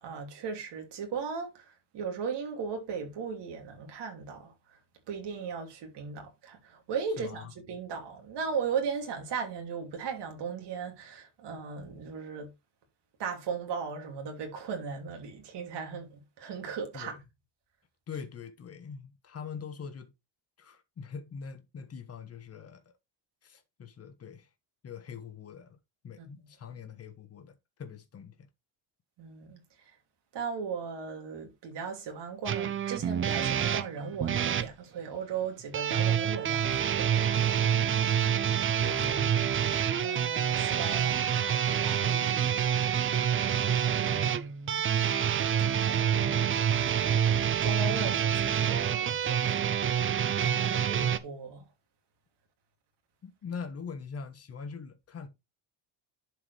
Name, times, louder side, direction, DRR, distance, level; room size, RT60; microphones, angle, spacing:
voice 1, 0.0-4.5 5.1-12.5 13.2-17.2 26.2-26.3 29.2-29.6 30.3-37.7 40.0-42.7 43.8-44.9 45.7-46.5 47.3-51.6, right 5 dB, 60° right, 2.8 m, -37 dB
voice 2, 7.2-7.5 16.9-17.1 18.1-20.1 20.6-22.9 23.4-24.5 24.8-25.8 26.0-28.5 38.8-39.4 53.2-55.3, left 6 dB, 30° left, 1.2 m, -43 dB
sound 1, 32.5-34.7 35.7-51.2, right 9 dB, 30° right, 0.4 m, -27 dB
11.0 x 4.7 x 3.3 m
cardioid pair, 175°, 47 cm